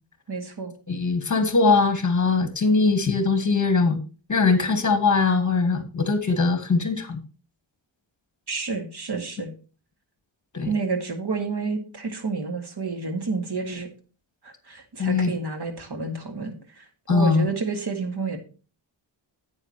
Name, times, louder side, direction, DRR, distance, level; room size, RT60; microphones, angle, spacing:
voice 1, 0.3-0.7 8.5-9.5 10.7-13.9 14.4-18.4, right 4 dB, 55° right, 5 dB, 2.1 m, -30 dB
voice 2, 0.9-4.0 4.3-7.2 10.5-10.7 15.0-15.3 17.1-17.5, left 4 dB, 40° left, 9 dB, 1.7 m, -21 dB
10.5 x 8.6 x 2.9 m, 0.36 s
wide cardioid pair, 135°, 48 cm